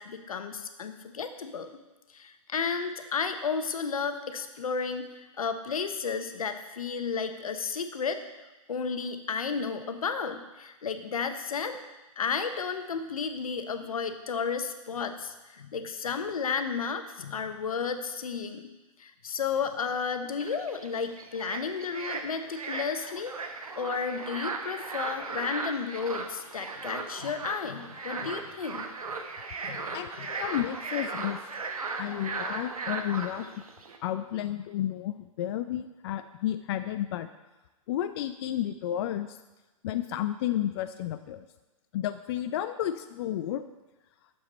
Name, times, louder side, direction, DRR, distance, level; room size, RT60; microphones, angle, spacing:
voice 1, 0.0-1.7 2.1-5.1 5.4-8.2 8.7-11.8 12.2-18.6 19.0-23.3 23.7-28.8 29.6-29.9 30.2-30.3, left 5 dB, 80° left, 8 dB, 0.9 m, -32 dB
sound 1, 20.4-34.0, right 4 dB, 90° right, 1.1 m, -37 dB
voice 2, 29.9-31.4 31.9-33.6 34.0-37.3 37.9-39.4 39.8-41.4 41.9-43.6, left 12 dB, 45° left, 9 dB, 0.4 m, -32 dB
9.5 x 7.1 x 4.1 m, 1.1 s
hypercardioid pair, 125°, 18 cm